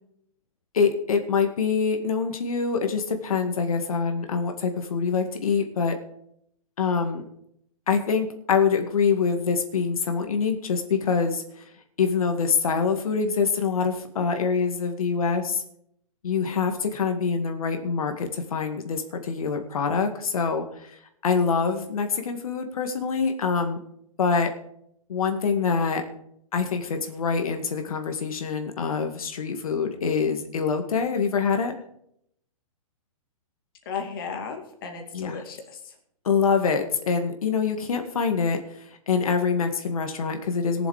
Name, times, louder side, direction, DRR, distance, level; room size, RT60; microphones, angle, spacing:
voice 1, 0.7-5.9 6.8-7.2 7.9-11.6 12.0-15.6 16.2-21.0 21.2-23.8 24.2-24.5 25.1-26.0 26.5-31.7 35.1-35.4 36.2-38.6 39.1-40.9, left 5 dB, 75° left, 5 dB, 2.1 m, -25 dB
voice 2, 33.9-36.0, left 6 dB, 40° left, 3 dB, 2.6 m, -35 dB
19.0 x 7.2 x 5.0 m, 0.71 s
hypercardioid pair, 175°, 18 cm